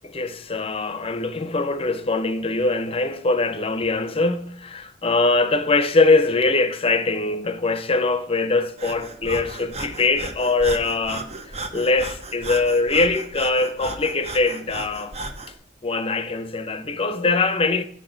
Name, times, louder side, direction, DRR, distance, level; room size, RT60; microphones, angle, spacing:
voice 1, 0.0-11.3 11.7-15.1 15.8-17.8, left 3 dB, 30° left, 0.7 m, -22 dB
Breathing, 8.8-15.5, right 3 dB, 35° right, 0.8 m, -35 dB
8.8 x 6.5 x 3.9 m
head